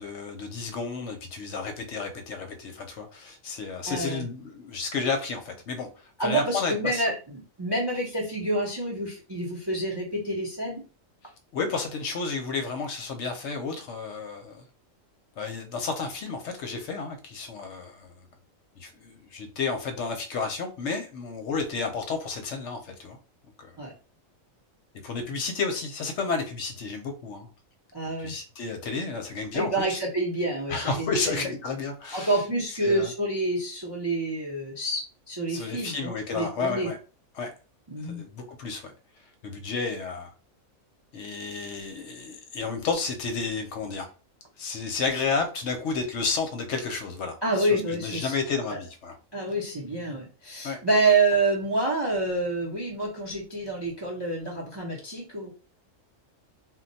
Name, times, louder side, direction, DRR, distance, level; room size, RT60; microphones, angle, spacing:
voice 1, 0.0-7.1 11.5-14.7 15.4-18.1 18.8-23.2 23.6-23.7 25.0-27.5 28.2-30.0 30.7-32.4 32.8-33.1 35.5-37.0 37.4-37.5 38.0-38.9 39.4-40.3 41.1-44.1 44.6-49.2 50.6-50.8, left 4 dB, 65° left, 5 dB, 0.8 m, -31 dB
voice 2, 3.9-4.2 6.2-10.8 23.8-23.9 27.9-28.3 29.5-31.4 32.1-36.9 37.9-38.2 47.4-48.3 48.7-48.8 49.3-55.5, right 2 dB, 30° right, -1 dB, 0.5 m, -28 dB
2.3 x 2.2 x 3.9 m, 0.34 s
omnidirectional pair, 1.4 m